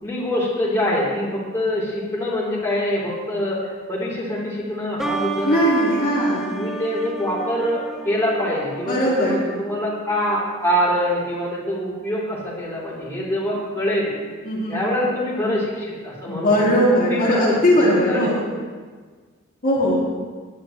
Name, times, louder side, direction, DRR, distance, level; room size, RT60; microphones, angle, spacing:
voice 1, 0.0-3.6 3.9-5.6 6.5-14.1 14.7-18.5, equal, 15° left, -6 dB, 3.3 m, -24 dB
sound 1, 5.0-10.4, right 2 dB, ahead, 0.8 m, -32 dB
voice 2, 5.4-6.5 8.9-9.4 14.4-14.8 16.3-18.4 19.6-20.0, equal, 45° left, -7 dB, 2.4 m, -19 dB
18.0 x 10.0 x 3.1 m, 1.5 s
head